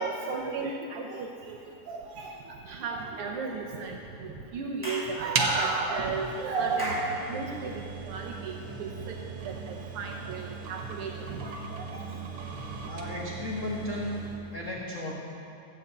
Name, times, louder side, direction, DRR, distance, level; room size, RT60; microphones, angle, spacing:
voice 1, 0.0-1.6 1.9-2.3 2.7-9.2 9.4-12.0, right 4 dB, 80° right, 1 dB, 1.3 m, -34 dB
Clapping / Chirp tweet, 4.8-5.1 6.8-7.1, equal, 5° left, 2.3 m, -34 dB
sound 1, 5.3-14.5, right 4 dB, 60° right, 1.7 m, -37 dB
voice 2, 12.9-15.1, left 1 dB, 65° left, -4 dB, 0.7 m, -35 dB
14.0 x 7.5 x 8.0 m, 2.7 s
omnidirectional pair, 3.5 m